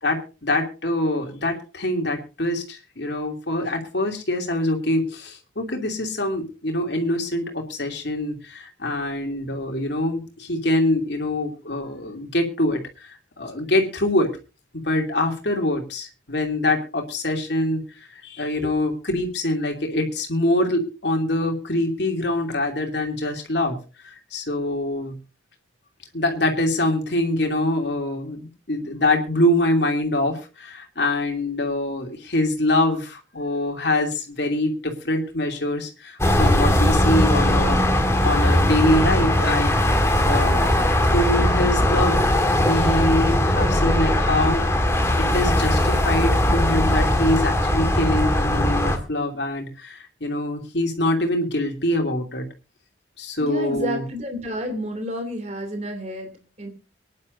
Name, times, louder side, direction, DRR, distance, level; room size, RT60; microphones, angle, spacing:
voice 1, 0.0-14.3 14.7-17.8 18.1-23.8 24.0-25.2 26.1-37.8 38.2-40.8 41.0-42.3 42.6-52.5 53.2-54.0, left 1 dB, 65° left, 2 dB, 2.9 m, -24 dB
sound 1, 36.2-49.0, left 1 dB, 15° left, 1.7 m, -19 dB
voice 2, 53.4-56.7, equal, 35° right, 5 dB, 2.8 m, -30 dB
24.0 x 11.0 x 2.6 m, 0.33 s
head